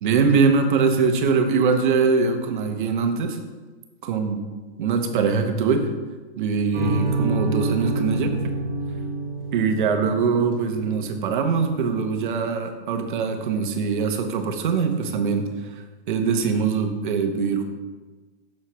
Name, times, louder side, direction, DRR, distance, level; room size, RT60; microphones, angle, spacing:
voice 1, 0.0-3.4 4.0-4.4 4.8-5.9 6.4-8.3 9.5-15.5 16.1-17.6, right 5 dB, 45° right, 6 dB, 1.0 m, -22 dB
sound 1, 6.7-11.9, right 2 dB, 20° right, 1.5 m, -28 dB
8.1 x 6.5 x 3.1 m, 1.3 s
hypercardioid pair, 150°, 33 cm